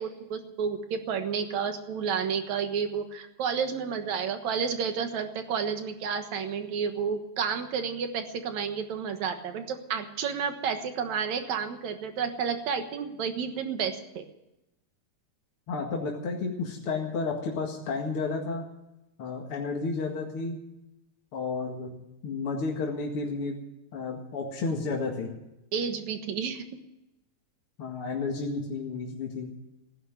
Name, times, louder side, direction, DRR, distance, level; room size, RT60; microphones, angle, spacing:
voice 1, 0.0-14.2 25.7-26.6, right 6 dB, 75° right, 7 dB, 2.7 m, -31 dB
voice 2, 15.7-18.6 19.2-20.6 21.3-23.6 23.9-25.3 27.8-29.5, left 4 dB, 50° left, -1 dB, 2.7 m, -32 dB
16.0 x 11.0 x 7.8 m, 0.92 s
omnidirectional pair, 3.3 m